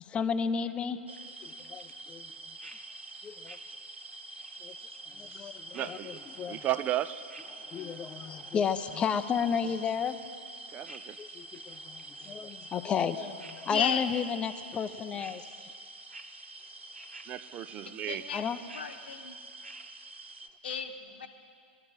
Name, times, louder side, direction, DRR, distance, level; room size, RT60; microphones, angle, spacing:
voice 1, 0.1-1.0 1.4-2.3 3.2-3.6 4.6-4.7 5.1-6.6 7.5-10.2 11.2-15.4 18.3-18.6, left 7 dB, 15° left, 0.6 m, -33 dB
sound 1, 1.1-20.5, right 2 dB, 80° right, 0.7 m, -46 dB
voice 2, 5.7-6.2 6.5-7.3 10.7-11.2 17.3-18.3, right 13 dB, 25° right, 0.4 m, -34 dB
voice 3, 13.7-14.1 17.9-18.5 18.7-19.3 20.6-21.3, left 7 dB, 60° left, 1.0 m, -33 dB
21.0 x 12.5 x 4.3 m
figure-of-eight pair, 105°, 6 cm